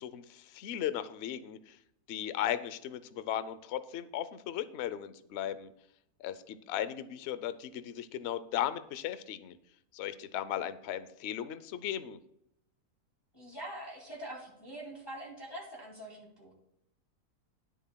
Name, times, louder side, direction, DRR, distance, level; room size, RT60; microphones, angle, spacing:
voice 1, 0.0-1.8 2.1-5.7 6.2-9.6 9.9-12.2, left 11 dB, 60° left, 13 dB, 0.7 m, -36 dB
voice 2, 13.3-16.5, right 1 dB, 15° left, -2 dB, 2.4 m, -44 dB
20.5 x 7.1 x 2.2 m, 0.77 s
omnidirectional pair, 1.6 m